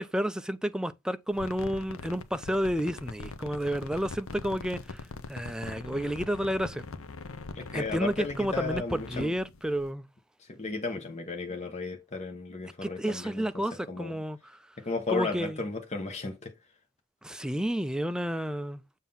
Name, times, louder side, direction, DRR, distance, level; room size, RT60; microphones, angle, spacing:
voice 1, 0.0-6.8 7.7-10.1 12.8-14.6 15.1-15.6 17.2-18.8, equal, 5° right, 0.3 m, -31 dB
sound 1, 1.3-9.9, left 3 dB, 65° left, 0.7 m, -42 dB
voice 2, 7.5-9.3 10.5-13.5 13.9-14.1 14.8-16.5, left 3 dB, 30° left, 1.1 m, -34 dB
7.3 x 2.7 x 5.6 m
head